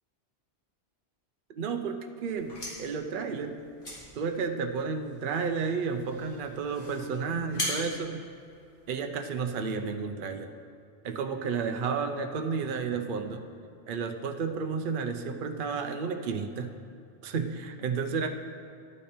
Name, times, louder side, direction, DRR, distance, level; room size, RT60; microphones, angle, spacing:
voice 1, 1.6-3.6 4.1-8.3 8.9-10.5 11.0-13.5 13.9-16.8 17.2-18.3, right 5 dB, 55° right, 6 dB, 0.8 m, -32 dB
sound 1, 2.2-9.1, equal, 50° left, 2.6 m, -41 dB
12.0 x 8.7 x 4.3 m, 2.6 s
omnidirectional pair, 1.1 m